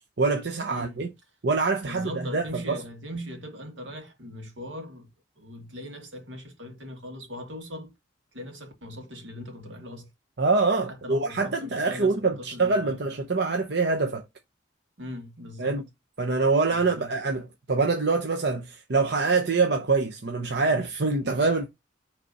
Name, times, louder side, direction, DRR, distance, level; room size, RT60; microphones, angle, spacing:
voice 1, 0.2-1.1 1.4-2.8 10.4-14.2 15.6-15.8 16.2-21.7, right 3 dB, 60° right, 0.8 m, -25 dB
voice 2, 0.7-1.0 1.8-5.1 5.4-7.9 8.3-10.1 10.9-13.0 15.0-15.8 16.7-17.2, equal, 85° right, 2.1 m, -40 dB
5.4 x 3.5 x 5.4 m
head